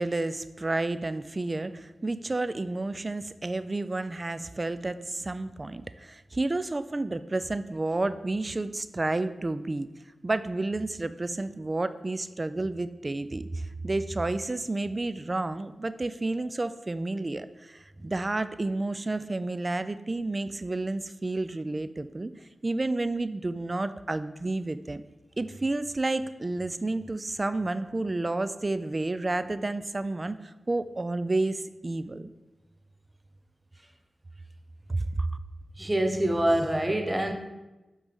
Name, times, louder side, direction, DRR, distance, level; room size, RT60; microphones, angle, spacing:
voice 1, 0.0-9.9 10.2-22.3 22.6-25.0 25.4-32.3 34.9-35.4, right 2 dB, 40° right, 13 dB, 0.3 m, -30 dB
voice 2, 35.8-37.3, right 1 dB, 20° right, 4 dB, 0.9 m, -25 dB
8.0 x 3.3 x 3.6 m, 1.1 s
cardioid pair, 45°, 0 cm